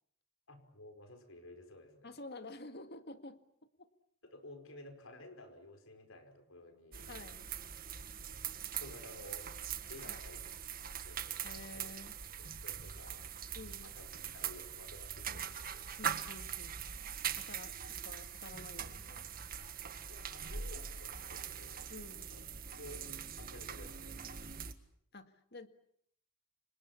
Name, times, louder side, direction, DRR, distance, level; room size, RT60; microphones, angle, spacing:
voice 1, 0.5-2.1 4.2-7.2 8.7-9.5 9.9-10.4 10.8-11.4 11.7-11.9 12.4-13.4 13.8-15.8 20.1-21.9 22.3-22.5 22.8-24.3, left 1 dB, 75° left, 7 dB, 5.0 m, -54 dB
voice 2, 2.0-3.4 3.8-3.9 7.1-7.5 10.0-10.2 11.4-12.2 13.5-13.9 16.0-16.8 17.4-19.3 21.9-22.3 25.1-25.7, left 2 dB, 50° left, 9 dB, 2.0 m, -50 dB
sound 1, 6.9-24.7, right 8 dB, 45° right, 1.8 m, -42 dB
29.5 x 26.0 x 7.2 m, 0.68 s
head